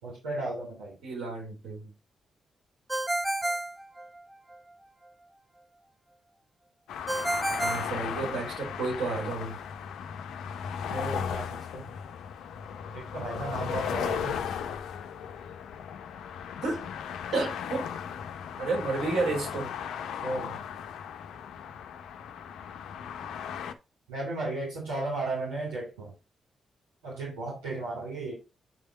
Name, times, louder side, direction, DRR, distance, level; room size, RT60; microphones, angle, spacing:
voice 1, 0.0-0.9 10.9-11.8 12.9-14.4 20.2-20.6 24.1-26.1 27.0-28.3, right 2 dB, 90° right, 3.4 m, -34 dB
voice 2, 1.0-1.9 7.6-9.6 16.6-16.8 17.3-17.9 18.6-19.7, right 3 dB, 70° right, 5.0 m, -31 dB
Ringtone, 2.9-4.6 7.1-8.8, right 1 dB, 15° right, 0.8 m, -31 dB
sound 1, 6.9-23.7, left 8 dB, 80° left, 0.7 m, -36 dB
9.3 x 3.5 x 4.4 m
hypercardioid pair, 45°, 0 cm